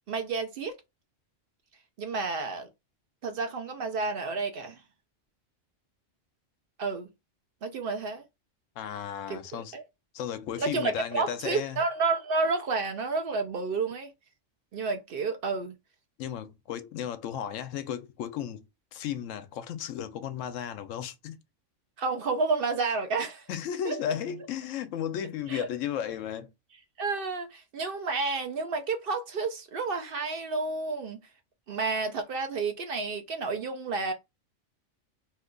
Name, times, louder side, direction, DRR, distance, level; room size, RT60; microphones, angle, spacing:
voice 1, 0.1-0.8 2.0-2.7 3.2-4.8 6.8-7.1 7.6-8.2 9.3-9.8 10.6-14.1 14.7-15.7 22.0-23.5 23.9-24.0 25.5-25.7 27.0-31.2 31.7-34.1, right 4 dB, 60° right, 0.6 m, -30 dB
voice 2, 8.8-9.7 10.1-11.8 16.2-18.6 18.9-21.4 23.5-26.5, left 9 dB, 85° left, 0.9 m, -34 dB
2.8 x 2.2 x 3.7 m
omnidirectional pair, 1.3 m